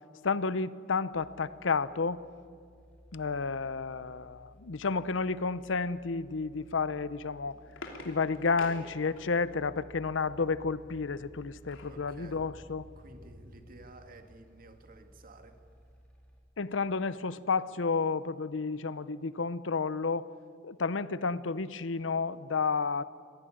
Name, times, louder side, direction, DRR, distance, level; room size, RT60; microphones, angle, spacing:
voice 1, 0.2-2.2 3.1-7.6 8.0-12.8 16.6-20.3 20.6-23.0, left 4 dB, 75° left, 16 dB, 0.7 m, -31 dB
sound 1, 1.1-16.4, equal, 5° left, 3.8 m, -57 dB
sound 2, 7.1-9.6 11.1-12.0 12.5-12.6 12.9-13.1, left 2 dB, 90° left, 3.2 m, -47 dB
Thunder, 10.1-15.8, equal, 15° right, 6.0 m, -58 dB
voice 2, 11.9-12.4 13.0-15.6, right 2 dB, 50° right, 7 dB, 2.0 m, -53 dB
24.0 x 17.5 x 10.0 m, 2.2 s
head